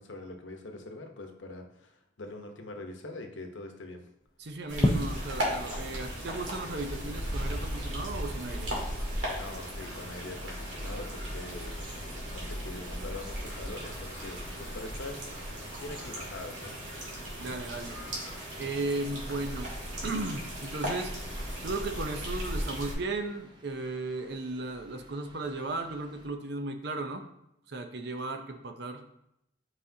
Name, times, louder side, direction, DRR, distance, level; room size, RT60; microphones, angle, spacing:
voice 1, 0.0-4.0 4.6-4.7 9.3-16.8, left 2 dB, 80° left, 4 dB, 0.9 m, -43 dB
sound 1, 4.2-21.3, left 1 dB, 20° left, 0.5 m, -41 dB
voice 2, 4.4-8.7 17.4-18.0 18.6-19.7 20.0-21.1 21.6-27.2 27.7-29.0, right 2 dB, 60° right, 6 dB, 0.7 m, -35 dB
sound 2, 4.7-22.9, equal, 75° right, 2.4 m, -37 dB
sound 3, 7.2-26.3, equal, 25° right, 0.8 m, -48 dB
8.0 x 4.9 x 2.8 m, 0.81 s
head